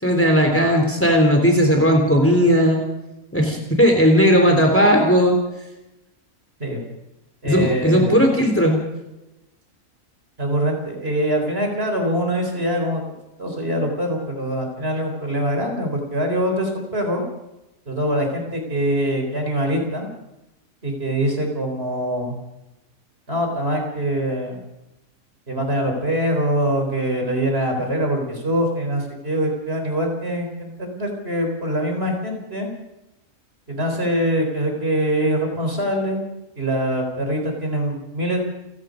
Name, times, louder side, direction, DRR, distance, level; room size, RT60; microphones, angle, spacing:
voice 1, 0.0-2.8 3.3-5.4 7.4-8.8, equal, 10° left, 3 dB, 3.7 m, -16 dB
voice 2, 7.4-8.1 10.4-13.0 13.4-17.2 17.9-20.1 20.8-22.3 23.3-24.6 25.5-32.7 33.7-36.2 36.6-38.4, equal, 45° right, 3 dB, 4.6 m, -23 dB
29.0 x 17.0 x 5.3 m, 0.95 s
omnidirectional pair, 1.5 m